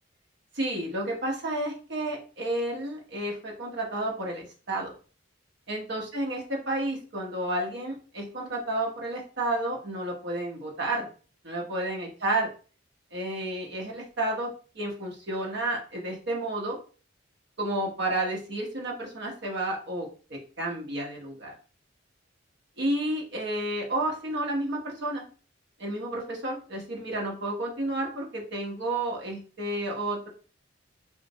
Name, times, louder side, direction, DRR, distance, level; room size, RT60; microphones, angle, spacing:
voice 1, 0.5-4.9 5.7-11.1 11.4-12.5 13.1-16.8 17.6-21.5 22.8-25.2 25.8-30.3, right 1 dB, 60° right, -1 dB, 0.9 m, -31 dB
3.0 x 2.3 x 2.7 m, 0.38 s
head